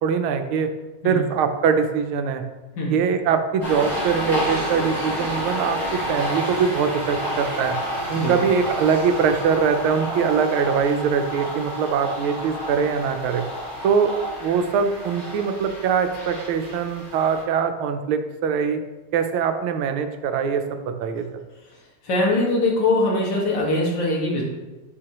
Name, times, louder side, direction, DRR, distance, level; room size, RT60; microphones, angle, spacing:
voice 1, 0.0-0.7 1.0-2.4 2.9-7.7 8.1-13.4 13.8-14.1 14.4-18.8 19.1-21.4, right 6 dB, 90° right, 7 dB, 1.5 m, -22 dB
sound 1, 3.6-17.4, equal, 25° left, 2.7 m, -30 dB
voice 2, 22.0-24.4, left 2 dB, 55° left, -4 dB, 2.2 m, -22 dB
9.7 x 4.8 x 2.9 m, 1.1 s
omnidirectional pair, 2.2 m